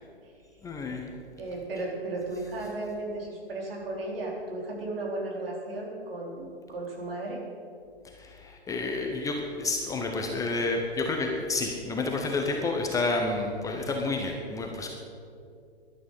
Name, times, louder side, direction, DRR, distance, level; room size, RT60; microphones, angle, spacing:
voice 1, 0.6-1.0 8.1-14.9, left 3 dB, 10° left, 2 dB, 1.0 m, -30 dB
voice 2, 1.4-7.4, right 2 dB, 60° right, -2 dB, 4.4 m, -35 dB
16.5 x 11.5 x 5.6 m, 2.5 s
figure-of-eight pair, 125°, 32 cm